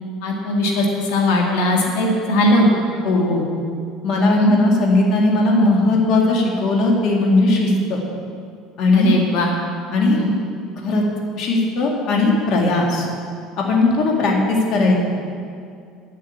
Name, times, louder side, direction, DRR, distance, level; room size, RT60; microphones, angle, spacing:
voice 1, 0.2-2.7 2.9-3.0 4.3-4.5 8.9-9.5 10.1-10.3, left 1 dB, 90° left, 0 dB, 1.8 m, -19 dB
voice 2, 3.0-3.5 4.0-8.0 8.8-9.2 9.9-10.2 10.8-11.0 11.4-13.1 13.6-15.2, left 2 dB, 55° left, -1 dB, 2.1 m, -18 dB
9.3 x 7.6 x 8.7 m, 2.3 s
cardioid pair, 145°, 0 cm